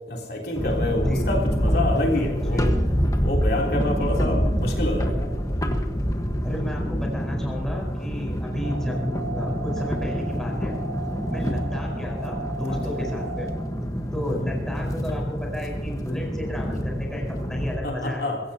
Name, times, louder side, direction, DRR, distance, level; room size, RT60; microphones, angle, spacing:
voice 1, 0.1-2.7 3.2-5.3 12.7-12.8 17.8-18.4, left 1 dB, 60° left, -1 dB, 3.4 m, -27 dB
sound 1, 0.5-17.8, equal, 20° left, 1.3 m, -26 dB
voice 2, 6.4-10.7 11.3-13.5 14.1-18.3, left 1 dB, 5° left, -2 dB, 4.8 m, -33 dB
sound 2, 8.6-13.6, right 3 dB, 90° right, 6.7 m, -37 dB
25.0 x 15.5 x 2.9 m, 1.3 s
head